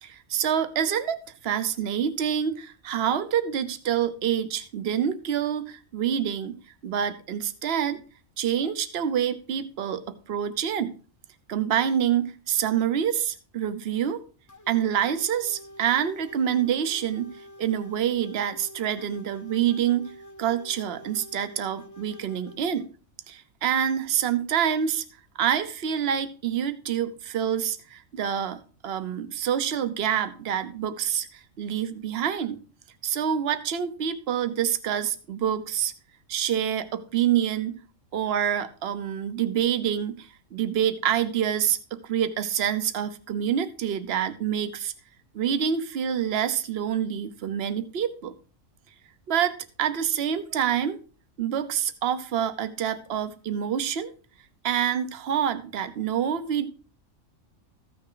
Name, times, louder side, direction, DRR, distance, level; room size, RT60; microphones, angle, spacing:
voice 1, 0.0-8.0 8.4-10.9 11.5-14.2 14.7-20.1 20.4-22.8 23.3-25.0 25.4-32.6 33.0-35.9 36.3-37.8 38.1-44.9 45.3-48.3 49.3-51.0 51.4-54.1 54.6-56.7, right 9 dB, 55° right, 11 dB, 1.0 m, -27 dB
sound 1, 14.5-22.9, equal, 20° left, 0.6 m, -47 dB
14.5 x 6.6 x 3.8 m, 0.38 s
omnidirectional pair, 1.4 m